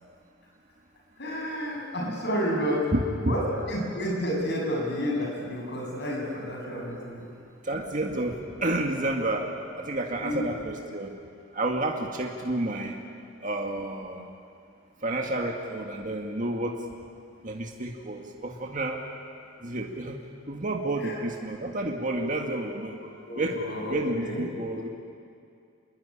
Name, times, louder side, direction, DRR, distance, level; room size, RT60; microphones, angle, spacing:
voice 1, 1.2-2.8 3.2-3.4 3.7-7.2 10.2-10.4 21.0-21.2 23.2-24.5, equal, 55° left, 0 dB, 7.5 m, -30 dB
voice 2, 7.6-11.1 11.5-13.0 13.4-14.3 15.0-16.7 17.4-19.0 19.6-20.2 20.5-23.0 23.4-23.6 23.9-24.9, right 2 dB, 40° right, 1 dB, 2.0 m, -30 dB
27.0 x 21.5 x 10.0 m, 2.4 s
head